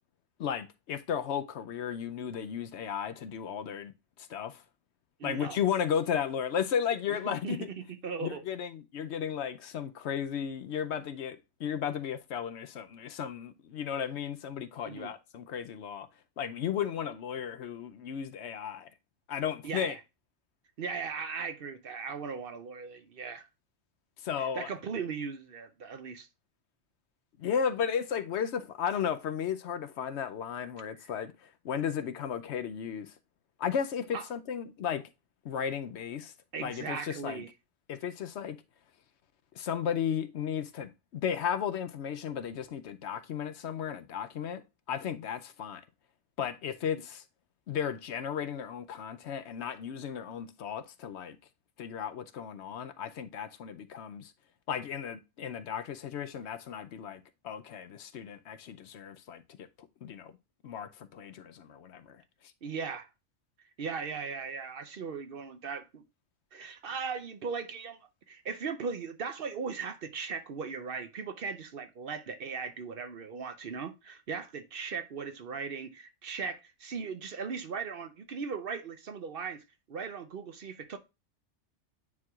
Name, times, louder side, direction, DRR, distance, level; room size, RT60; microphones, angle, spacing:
voice 1, 0.4-3.9 4.3-4.6 5.2-7.6 8.2-16.1 16.4-18.9 19.3-20.0 24.2-24.7 27.4-31.3 31.6-33.1 33.6-35.0 35.4-36.3 36.6-37.4 37.9-38.6 39.6-44.6 44.9-45.8 46.4-47.2 47.7-51.4 51.8-54.3 54.7-59.4 60.0-60.3 60.6-62.2, left 8 dB, 70° left, 0.9 m, -34 dB
voice 2, 5.2-5.6 7.1-8.4 14.8-15.1 19.6-20.0 20.8-23.5 24.4-26.3 31.0-31.1 34.1-34.2 36.5-37.5 46.9-47.0 62.6-63.1 63.8-66.0 66.5-68.0 68.3-81.0, right 5 dB, 55° right, 0.8 m, -38 dB
9.5 x 4.5 x 2.3 m
omnidirectional pair, 1.2 m